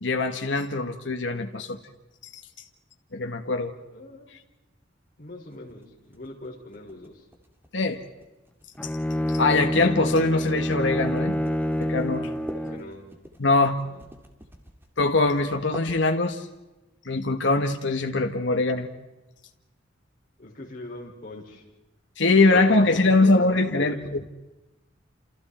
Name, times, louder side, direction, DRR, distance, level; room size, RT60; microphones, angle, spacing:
voice 1, 0.0-1.8 3.1-3.7 7.7-8.0 9.3-11.4 11.8-12.3 13.4-13.8 15.0-16.4 17.0-18.9 22.2-24.2, left 3 dB, 65° left, 5 dB, 1.5 m, -22 dB
voice 2, 3.9-4.3 5.2-7.3 12.5-13.0 13.8-14.1 20.4-21.6 22.3-24.1, left 2 dB, 45° left, -2 dB, 5.6 m, -42 dB
sound 1, 5.5-16.5, equal, 10° right, 2.6 m, -47 dB
Bowed string instrument, 8.8-13.0, equal, 5° left, 0.8 m, -27 dB
29.5 x 28.5 x 4.4 m, 1.0 s
head